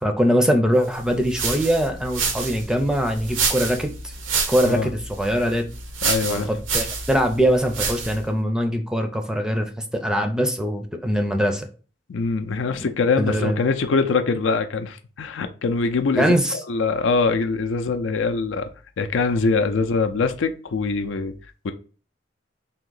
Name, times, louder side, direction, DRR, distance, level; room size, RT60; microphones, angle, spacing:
voice 1, 0.0-3.9 4.5-5.6 6.3-11.7 12.8-12.9 13.2-13.6 16.2-16.6, equal, 5° right, 0.4 m, -22 dB
sound 1, 0.9-8.3, right 5 dB, 90° right, 0.8 m, -28 dB
voice 2, 6.0-6.5 12.1-18.7 19.0-21.3 21.6-21.7, left 4 dB, 80° left, 0.5 m, -23 dB
3.6 x 2.8 x 3.8 m
head